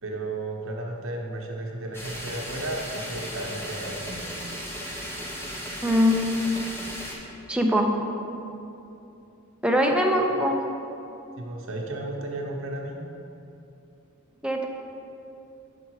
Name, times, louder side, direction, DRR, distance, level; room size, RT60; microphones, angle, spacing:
voice 1, 0.0-4.3 11.4-13.0, right 2 dB, 70° right, 0 dB, 0.9 m, -34 dB
sound 1, 1.9-7.1, equal, 10° left, 0.9 m, -36 dB
voice 2, 5.8-6.2 6.5-6.6 7.5-7.9 9.6-10.6 14.4-14.6, equal, 5° right, 1 dB, 0.5 m, -22 dB
6.4 x 5.1 x 4.7 m, 2.7 s
head